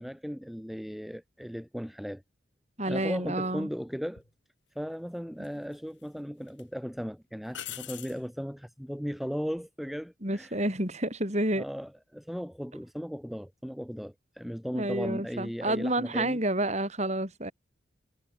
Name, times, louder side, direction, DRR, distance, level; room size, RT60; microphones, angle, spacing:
voice 1, 0.0-2.2 2.9-4.2 4.7-10.6 11.5-16.4, equal, ahead, 2.4 m, -37 dB
voice 2, 2.8-3.7 10.2-11.6 14.7-17.5, right 1 dB, 35° right, 7.1 m, -29 dB
sound 1, 4.2-4.3 5.4-6.1 6.5-6.6 7.5-8.2 11.3-11.7, left 11 dB, 65° left, 3.6 m, -42 dB
head